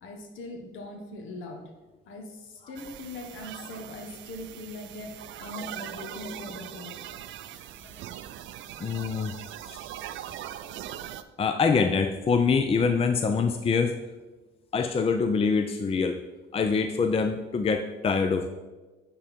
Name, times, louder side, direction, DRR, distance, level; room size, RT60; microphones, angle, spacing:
voice 1, 0.0-1.7 2.1-6.9, left 2 dB, 85° left, 3 dB, 1.2 m, -41 dB
sound 1, 2.8-11.2, right 11 dB, 75° right, 0.4 m, -41 dB
voice 2, 8.8-9.3 9.7-9.8 11.4-14.0 14.7-16.2 16.5-18.5, left 5 dB, 30° left, 7 dB, 0.4 m, -25 dB
9.6 x 3.8 x 4.3 m, 1.2 s
cardioid pair, 90°, 20 cm